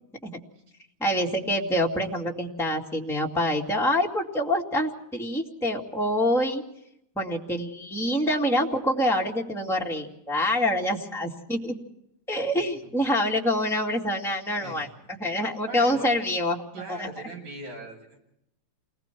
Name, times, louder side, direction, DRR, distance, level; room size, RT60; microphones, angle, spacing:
voice 1, 1.0-6.6 7.1-11.8 12.3-14.9 15.2-16.6 16.9-17.1, left 1 dB, ahead, -2 dB, 1.3 m, -26 dB
voice 2, 14.6-14.9 15.6-16.1 16.7-18.2, right 2 dB, 55° right, 0 dB, 9.0 m, -40 dB
29.0 x 21.0 x 4.6 m, 0.77 s
omnidirectional pair, 4.4 m